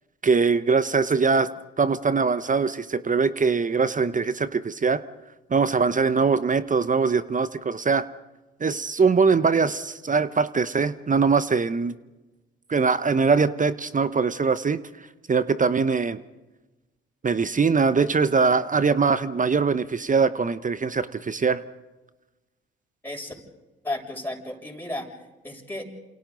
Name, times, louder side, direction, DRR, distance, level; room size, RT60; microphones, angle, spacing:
voice 1, 0.2-1.5 1.8-5.0 5.5-8.1 8.6-12.0 12.7-14.8 15.3-16.2 17.2-21.6, right 5 dB, 25° right, 15 dB, 1.0 m, -22 dB
voice 2, 23.0-23.3 23.8-25.1 25.4-25.8, left 1 dB, 5° left, -1 dB, 7.1 m, -33 dB
30.0 x 28.0 x 4.0 m, 1.1 s
hypercardioid pair, 50°, 29 cm